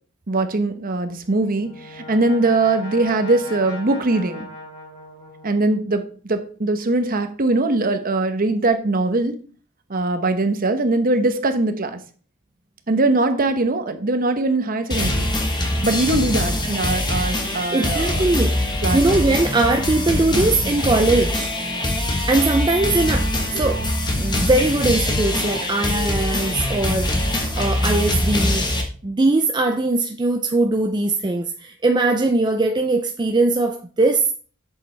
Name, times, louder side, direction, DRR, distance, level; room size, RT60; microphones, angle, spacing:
voice 1, 0.3-4.5 5.4-9.4 9.9-12.0 12.9-15.3 15.8-18.3 18.8-19.2, right 2 dB, 40° right, 0.9 m, -21 dB
Brass instrument, 1.1-5.9, left 1 dB, 35° left, 3.3 m, -38 dB
sound 1, 14.9-28.8, left 1 dB, 20° left, 1.2 m, -23 dB
voice 2, 17.7-18.5 18.9-21.5 22.3-23.3 23.6-23.9 24.2-28.7 29.0-34.3, right 2 dB, 20° right, 0.5 m, -20 dB
7.8 x 7.2 x 3.3 m
head